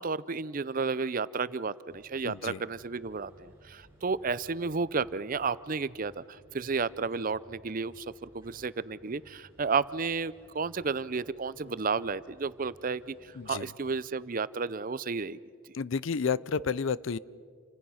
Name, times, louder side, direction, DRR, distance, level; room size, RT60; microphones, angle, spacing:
voice 1, 0.0-15.4, right 4 dB, 40° right, 17 dB, 0.6 m, -32 dB
sound 1, 1.9-14.4, right 1 dB, 15° right, 6.4 m, -59 dB
voice 2, 2.2-2.6 13.4-13.7 15.7-17.2, left 5 dB, 65° left, 19 dB, 0.5 m, -31 dB
29.0 x 25.5 x 5.7 m, 2.1 s
head